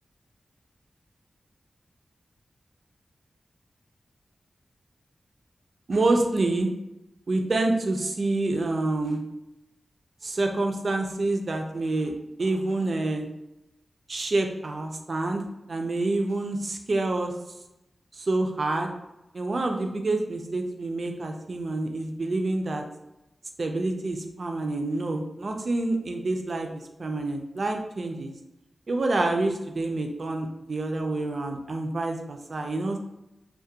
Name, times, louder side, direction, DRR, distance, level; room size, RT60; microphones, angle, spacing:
voice 1, 5.9-6.7 7.3-9.2 10.2-12.1 12.4-13.3 14.1-15.4 15.7-17.3 18.1-18.9 19.3-22.8 23.6-28.3 28.9-33.0, right 2 dB, 55° right, 4 dB, 0.3 m, -27 dB
2.3 x 2.1 x 2.7 m, 0.92 s
wide cardioid pair, 125°, 0 cm